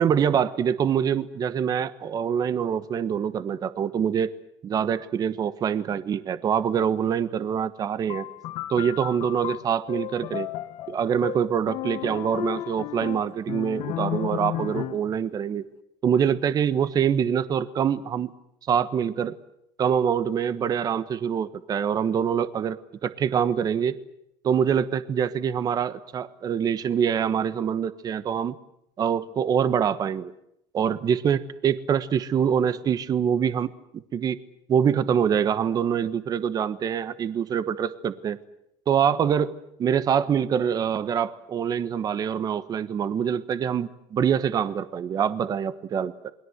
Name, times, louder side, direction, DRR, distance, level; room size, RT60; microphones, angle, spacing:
voice 1, 0.0-4.3 4.6-8.2 8.7-10.5 10.9-15.6 16.0-18.3 18.7-19.4 19.8-22.8 23.0-24.0 24.4-28.5 29.0-30.3 30.7-34.4 34.7-38.4 38.9-46.3, right 8 dB, 40° right, 13 dB, 1.2 m, -25 dB
sound 1, 8.1-15.2, left 14 dB, 65° left, 1.4 m, -33 dB
28.5 x 21.5 x 8.1 m, 0.76 s
cardioid pair, 125°, 10 cm